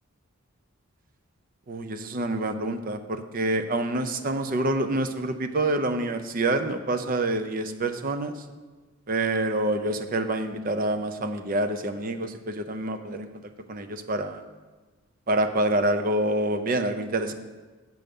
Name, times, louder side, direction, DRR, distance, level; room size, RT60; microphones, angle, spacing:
voice 1, 1.7-8.3 9.1-13.3 13.7-14.4 15.3-17.3, right 2 dB, 40° right, 9 dB, 0.5 m, -27 dB
7.7 x 6.7 x 5.3 m, 1.3 s
head